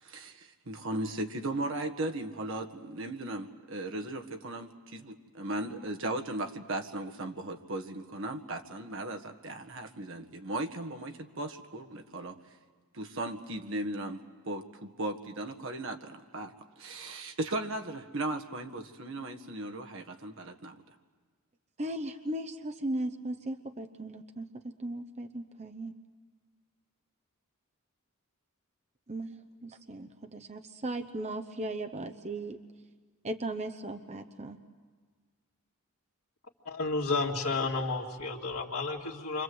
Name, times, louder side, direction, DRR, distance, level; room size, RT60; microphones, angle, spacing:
voice 1, 0.0-12.4 12.9-20.8, right 2 dB, 60° right, 6 dB, 1.6 m, -37 dB
voice 2, 21.8-25.9 29.1-29.4 29.6-32.6 33.2-34.6, right 1 dB, 30° right, 6 dB, 0.8 m, -37 dB
voice 3, 36.6-39.4, left 3 dB, 85° left, -8 dB, 2.1 m, -31 dB
29.0 x 25.0 x 7.9 m, 1.5 s
head